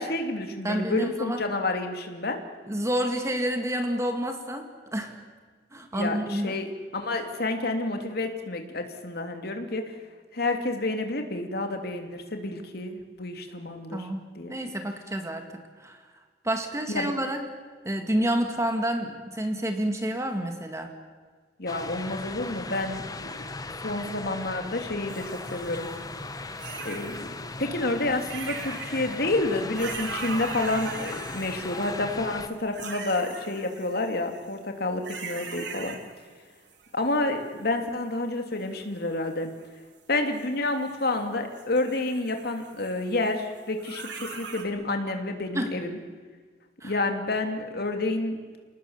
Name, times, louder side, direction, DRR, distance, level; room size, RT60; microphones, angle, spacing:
voice 1, 0.0-2.4 5.9-6.7 6.9-9.9 10.3-14.0 14.3-14.6 16.9-17.1 21.6-23.4 23.8-25.9 26.8-27.3 27.6-36.0 36.9-39.5 40.1-46.0 46.8-48.4, left 2 dB, 60° left, 5 dB, 2.8 m, -29 dB
voice 2, 0.6-1.4 2.7-5.2 5.7-6.6 13.9-16.0 16.4-17.4 17.8-20.9 45.5-45.7 46.8-47.0, right 1 dB, 15° right, 5 dB, 2.0 m, -29 dB
sound 1, 21.7-32.5, left 3 dB, 20° left, 1.1 m, -38 dB
sound 2, 25.1-26.0 26.6-27.3 28.1-29.2 29.5-32.1 32.7-34.5 35.0-36.3 36.7-37.7 38.6-39.6 40.1-41.2 41.6-44.6, right 4 dB, 90° right, 3.3 m, -41 dB
28.5 x 19.0 x 7.3 m, 1.5 s
head